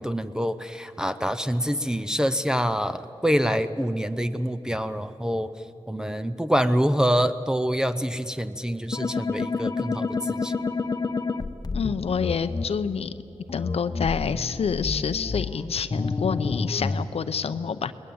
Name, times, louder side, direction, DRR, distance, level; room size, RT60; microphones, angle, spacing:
voice 1, 0.0-5.5 5.9-10.5, equal, 5° right, 11 dB, 0.7 m, -26 dB
sound 1, 8.9-12.6 13.5-17.0, left 4 dB, 40° left, 0.8 m, -29 dB
voice 2, 11.7-13.1 13.5-17.9, left 6 dB, 80° left, 11 dB, 0.7 m, -27 dB
21.0 x 20.0 x 8.7 m, 2.8 s
wide cardioid pair, 100°, 10 cm